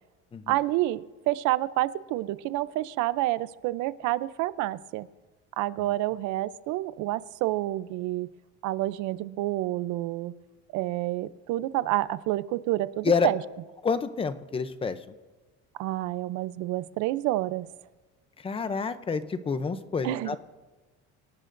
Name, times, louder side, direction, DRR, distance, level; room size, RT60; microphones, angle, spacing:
voice 1, 0.5-5.1 5.6-8.3 8.6-10.3 10.7-13.4 15.8-17.7 20.0-20.4, right 16 dB, 75° right, 16 dB, 0.6 m, -28 dB
voice 2, 13.8-15.0 18.4-20.4, left 5 dB, 20° left, 11 dB, 0.6 m, -28 dB
28.5 x 18.0 x 2.6 m, 1.3 s
cardioid pair, 165°, 30 cm